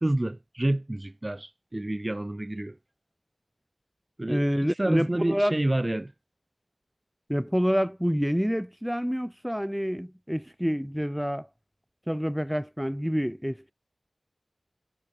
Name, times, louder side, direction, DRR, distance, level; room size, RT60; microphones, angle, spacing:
voice 1, 0.0-2.8 4.2-6.1, right 1 dB, 30° right, 2.0 m, -29 dB
voice 2, 4.3-5.6 7.3-11.5 12.1-13.7, equal, 5° right, 3.0 m, -27 dB
wide cardioid pair, 70°, 0 cm